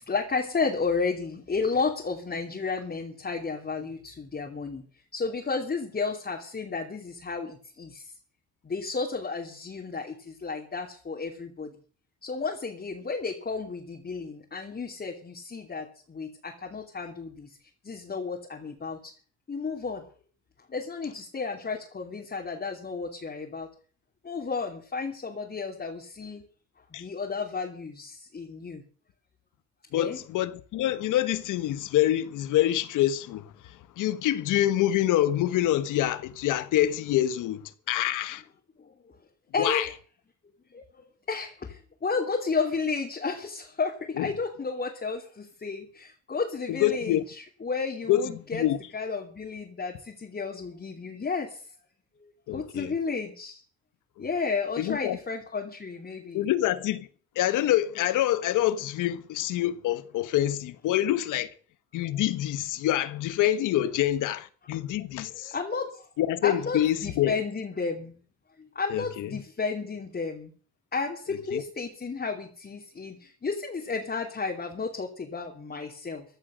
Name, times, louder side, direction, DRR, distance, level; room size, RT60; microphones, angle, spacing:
voice 1, 0.0-4.8 5.1-8.1 8.6-11.7 12.2-17.6 17.8-19.1 19.5-20.0 20.7-23.7 24.2-26.4 26.9-28.8 29.9-30.2 38.8-39.2 39.5-39.9 40.7-48.7 48.9-51.6 52.2-53.6 54.2-56.5 65.2-66.1 66.4-68.2 68.6-70.5 70.9-76.3, left 4 dB, 30° left, 3.1 m, -32 dB
voice 2, 29.9-38.4 39.6-39.9 44.2-44.3 46.7-47.2 48.1-48.8 52.5-52.9 54.2-54.3 54.8-55.2 56.3-57.1 57.3-61.5 61.9-65.5 66.2-67.3 68.9-69.3 71.5-71.6, left 13 dB, 90° left, 1.3 m, -26 dB
15.5 x 11.0 x 6.5 m
cardioid pair, 90°, 30 cm